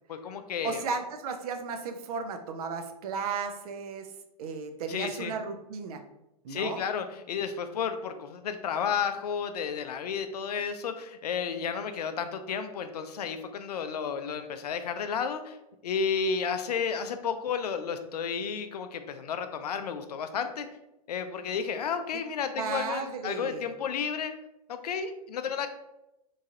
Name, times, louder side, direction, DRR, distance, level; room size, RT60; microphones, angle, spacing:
voice 1, 0.1-0.9 4.9-5.3 6.5-15.6 15.8-20.7 21.1-24.3 24.7-25.7, left 6 dB, 90° left, 9 dB, 0.4 m, -32 dB
voice 2, 0.6-4.1 4.4-6.0 6.4-6.8 22.6-23.7, right 5 dB, 75° right, 6 dB, 0.5 m, -34 dB
3.0 x 2.4 x 2.7 m, 0.90 s
hypercardioid pair, 115°, 20 cm